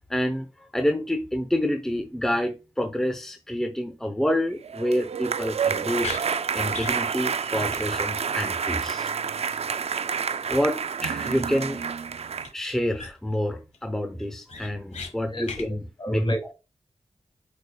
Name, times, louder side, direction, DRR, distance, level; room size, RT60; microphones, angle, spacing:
voice 1, 0.1-0.5 0.7-6.1 6.5-9.1 10.5-11.8 12.5-16.2, equal, 5° left, 0.8 m, -28 dB
sound 1, 4.6-12.5, right 6 dB, 70° right, 0.4 m, -29 dB
sound 2, 6.0-6.2 6.7-7.0 7.3-7.4 7.7-7.8 8.1-8.2 12.4-12.5 13.0-13.4 13.7-13.8 14.2-15.1 15.4-15.7, left 4 dB, 85° left, 1.3 m, -36 dB
voice 2, 15.2-16.5, equal, 45° left, 2.6 m, -28 dB
8.1 x 5.1 x 2.3 m
wide cardioid pair, 55°, 11 cm